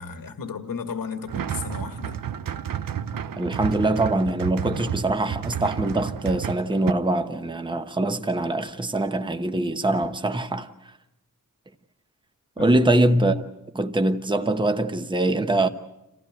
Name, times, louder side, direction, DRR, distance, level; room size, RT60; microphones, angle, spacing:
voice 1, 0.0-2.2 12.6-12.8, left 5 dB, 80° left, 1.8 m, -34 dB
sound 1, 1.3-6.9, right 9 dB, 80° right, 0.8 m, -31 dB
voice 2, 3.4-10.7 12.6-13.4 13.7-15.7, right 2 dB, 15° right, 1.0 m, -23 dB
28.0 x 16.0 x 9.2 m
wide cardioid pair, 155°, 33 cm